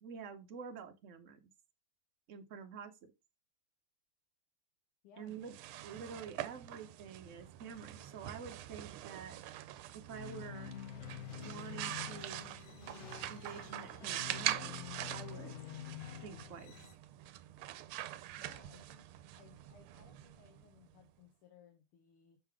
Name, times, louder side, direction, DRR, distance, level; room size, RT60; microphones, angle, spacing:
voice 1, 0.0-1.4 2.3-3.1 5.2-5.6 5.8-9.4 9.9-10.8 11.3-12.6 13.3-14.7 15.1-15.5 16.2-16.8, right 6 dB, 65° right, 0.7 m, -48 dB
voice 2, 5.0-5.5 18.4-19.1 19.4-22.4, left 8 dB, 80° left, 1.9 m, -62 dB
sound 1, 5.3-21.0, right 13 dB, 80° right, 1.4 m, -44 dB
sound 2, 10.1-16.9, left 11 dB, 65° left, 0.9 m, -48 dB
sound 3, 10.8-15.9, left 3 dB, 35° left, 1.7 m, -60 dB
6.6 x 3.8 x 4.6 m
omnidirectional pair, 2.4 m